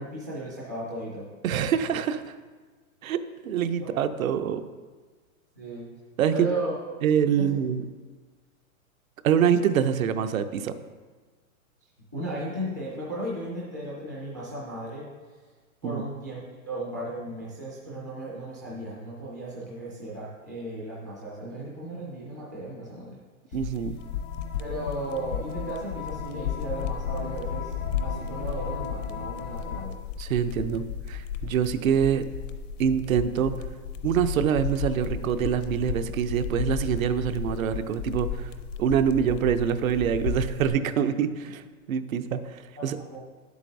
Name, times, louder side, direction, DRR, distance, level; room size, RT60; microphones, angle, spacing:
voice 1, 0.0-1.3 3.8-3.9 5.6-5.9 6.3-6.7 7.4-7.5 12.1-15.1 15.8-16.4 16.6-23.2 23.5-23.6 24.6-27.7 28.0-30.0 42.8-43.2, right 1 dB, 15° right, -7 dB, 0.3 m, -35 dB
voice 2, 1.4-2.2 3.0-4.6 6.2-6.5 7.0-7.8 9.2-10.7 15.8-16.1 23.5-24.0 30.2-32.2 32.8-33.5 34.0-38.5 38.8-41.6 41.9-43.0, right 8 dB, 70° right, 10 dB, 0.7 m, -25 dB
sound 1, 23.5-40.7, left 7 dB, 60° left, 0.6 m, -34 dB
sound 2, 24.0-29.9, left 7 dB, 75° left, 0.9 m, -39 dB
10.0 x 8.1 x 2.7 m, 1.4 s
hypercardioid pair, 165°, 43 cm